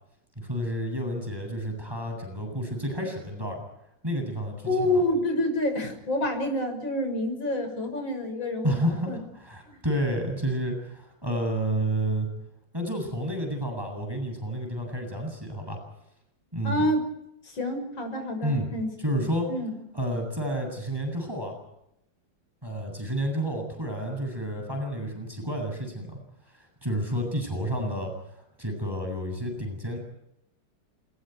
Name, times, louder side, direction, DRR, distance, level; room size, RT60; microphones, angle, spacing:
voice 1, 0.4-3.6 4.0-5.0 8.6-12.3 12.7-15.8 16.5-16.8 18.4-18.7 19.0-19.5 19.9-21.6 22.6-26.2 26.5-28.1 28.6-30.0, right 1 dB, 10° right, 3 dB, 8.1 m, -30 dB
voice 2, 4.7-8.8 9.1-9.2 9.7-9.8 16.6-17.1 17.5-18.9 19.5-19.8, left 1 dB, 80° left, 5 dB, 7.1 m, -27 dB
29.0 x 28.5 x 4.8 m, 0.81 s
omnidirectional pair, 2.1 m